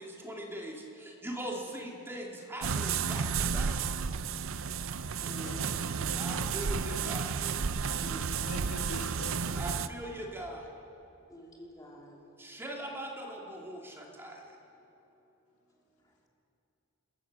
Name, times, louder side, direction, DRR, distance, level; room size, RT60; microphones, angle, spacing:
voice 1, 0.0-3.8 6.1-7.4 9.6-10.7 12.4-14.4, equal, 10° right, -2 dB, 2.4 m, -41 dB
sound 1, 2.6-9.9, right 6 dB, 65° right, 0.6 m, -32 dB
voice 2, 5.2-5.9 8.0-8.3 11.3-12.2, left 1 dB, 15° left, -2 dB, 3.0 m, -47 dB
voice 3, 6.0-6.5 7.9-9.6, left 2 dB, 85° left, 3 dB, 1.8 m, -45 dB
27.5 x 12.5 x 7.4 m, 2.9 s
head